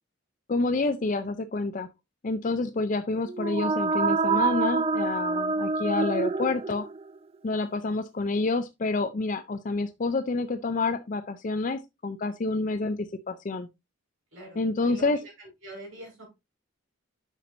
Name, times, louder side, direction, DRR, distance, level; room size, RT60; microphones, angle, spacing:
voice 1, 0.5-1.9 2.2-6.8 7.4-13.0 13.3-13.7 14.6-15.2, left 3 dB, 40° left, 0.4 m, -28 dB
sound 1, 3.3-7.1, right 4 dB, 30° right, 0.4 m, -26 dB
voice 2, 14.3-16.2, right 1 dB, 80° right, 4.9 m, -44 dB
8.1 x 6.1 x 2.6 m
head